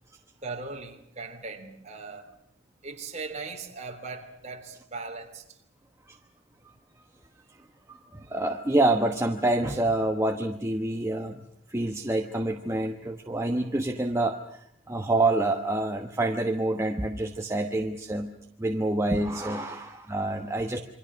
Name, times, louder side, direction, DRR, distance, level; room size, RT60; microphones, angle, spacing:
voice 1, 0.4-2.3 2.8-5.6 19.7-19.8, right 4 dB, 35° right, 4 dB, 3.3 m, -39 dB
voice 2, 7.9-11.4 11.7-18.3 18.6-20.8, right 2 dB, 15° right, 3 dB, 1.1 m, -27 dB
27.5 x 24.5 x 6.3 m, 0.70 s
head